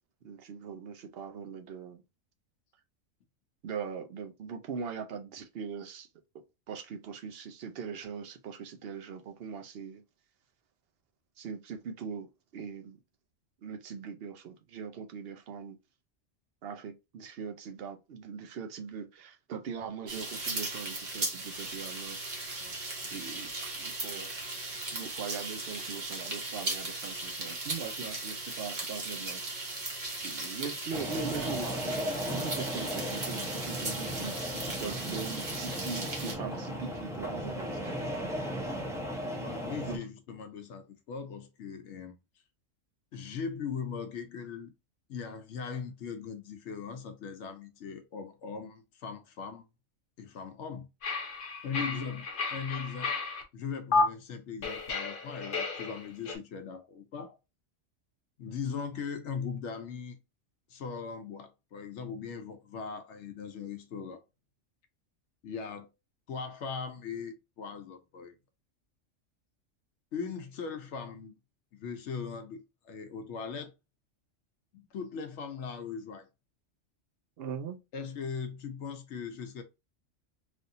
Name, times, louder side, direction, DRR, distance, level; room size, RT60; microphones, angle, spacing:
voice 1, 0.2-2.0 3.6-6.1 6.7-10.0 11.4-13.0 13.6-15.8 16.6-22.2 23.1-24.3 24.9-29.4 30.2-32.0 32.3-38.1 39.9-40.0 51.8-52.1 77.4-77.8, right 6 dB, 60° right, 0.7 m, -41 dB
sound 1, 20.1-36.3, right 2 dB, 40° right, 1.0 m, -37 dB
voice 2, 22.6-23.1 39.4-42.2 43.1-44.7 45.1-49.6 50.2-50.9 51.6-53.1 53.5-57.4 58.4-60.2 60.7-64.2 65.4-65.9 66.3-68.4 70.1-71.3 71.7-73.7 74.7-76.3 77.9-79.6, left 6 dB, 70° left, 0.9 m, -39 dB
sound 2, 30.9-40.0, equal, 5° right, 0.6 m, -36 dB
sound 3, 51.0-53.4 53.9-54.0 54.6-56.4, left 4 dB, 50° left, 0.9 m, -32 dB
3.3 x 2.6 x 2.6 m
omnidirectional pair, 1.3 m